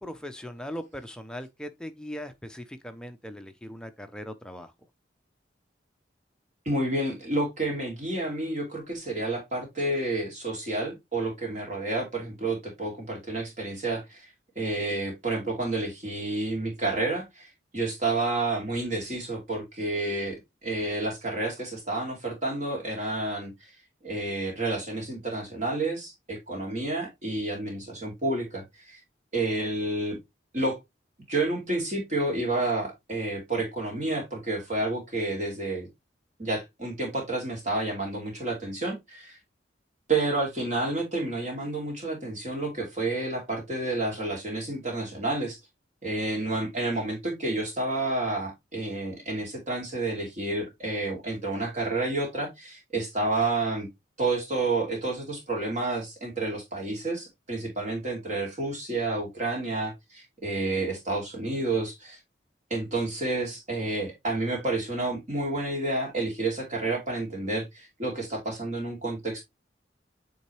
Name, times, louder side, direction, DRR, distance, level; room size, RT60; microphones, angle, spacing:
voice 1, 0.0-4.7, equal, 5° left, 0.5 m, -39 dB
voice 2, 6.7-14.3 14.6-17.5 17.7-20.4 20.6-23.5 24.0-29.0 29.3-30.2 30.5-30.8 31.3-35.9 36.4-39.4 40.1-45.6 46.0-53.9 54.2-62.2 62.7-69.4, right 2 dB, 40° right, 2.5 m, -30 dB
8.5 x 3.8 x 3.1 m
head